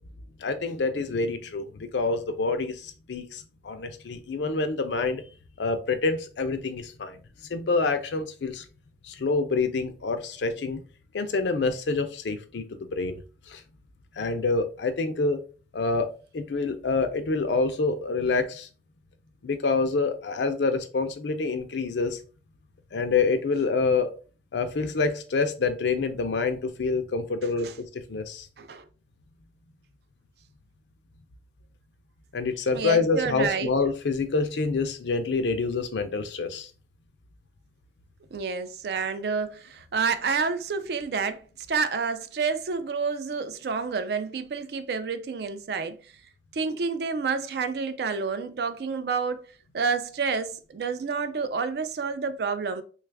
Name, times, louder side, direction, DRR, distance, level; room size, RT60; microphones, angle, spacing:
voice 1, 0.4-5.2 5.6-7.2 7.5-8.6 9.0-10.8 11.1-13.2 13.5-13.6 14.2-15.4 15.7-16.1 16.3-18.7 19.4-22.2 22.9-24.1 24.5-27.7 27.9-28.5 32.3-36.7, left 4 dB, 80° left, 0.5 m, -27 dB
voice 2, 32.7-33.7 38.3-41.4 41.7-46.0 46.5-49.4 49.7-52.8, right 5 dB, 65° right, 0.4 m, -29 dB
3.2 x 2.4 x 3.3 m
head